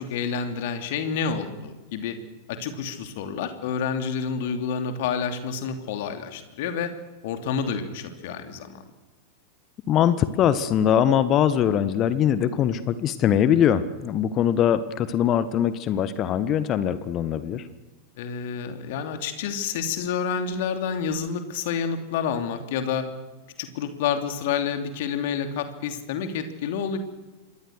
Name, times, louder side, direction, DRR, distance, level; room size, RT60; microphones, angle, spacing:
voice 1, 0.0-2.2 2.5-6.9 7.2-8.8 18.2-23.1 23.6-27.0, left 6 dB, 50° left, 7 dB, 3.0 m, -29 dB
voice 2, 9.9-17.6, left 9 dB, 35° left, 14 dB, 1.3 m, -22 dB
27.0 x 23.0 x 6.5 m, 1.1 s
figure-of-eight pair, 90°, 0 cm